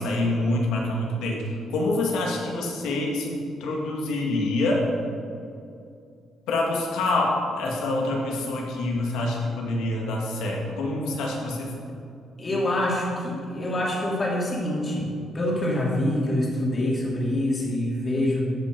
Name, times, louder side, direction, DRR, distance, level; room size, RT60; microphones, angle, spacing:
voice 1, 0.0-1.4 1.7-4.9 6.5-11.7 12.5-12.6, left 2 dB, 90° left, -1 dB, 2.0 m, -26 dB
voice 2, 12.4-18.4, left 1 dB, 30° left, -3 dB, 2.8 m, -26 dB
13.5 x 5.8 x 5.3 m, 2.5 s
cardioid pair, 90°, 0 cm